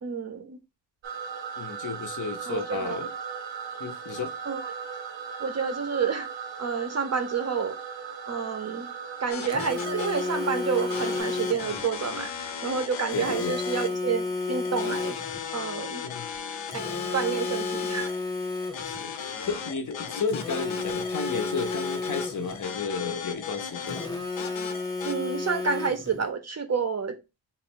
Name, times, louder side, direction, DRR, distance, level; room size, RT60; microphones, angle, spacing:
voice 1, 0.0-0.6 2.5-3.0 4.5-4.7 5.4-6.3 6.6-7.8 8.3-8.9 9.2-15.2 15.5-16.0 16.7-16.9 17.1-18.1 25.0-27.2, right 6 dB, 35° right, 0.5 m, -29 dB
sound 1, 1.0-11.2, right 6 dB, 85° right, 0.7 m, -38 dB
voice 2, 1.6-3.1 3.8-4.3 13.1-13.6 16.0-16.3 18.8-24.1, left 5 dB, 45° left, 0.5 m, -33 dB
sound 2, 9.3-25.1, left 7 dB, 90° left, 0.6 m, -37 dB
Telephone, 9.5-11.8 13.1-15.5 16.7-19.0 20.3-22.7 23.9-26.2, left 3 dB, 10° left, 0.7 m, -32 dB
3.7 x 2.0 x 4.2 m
wide cardioid pair, 150°, 44 cm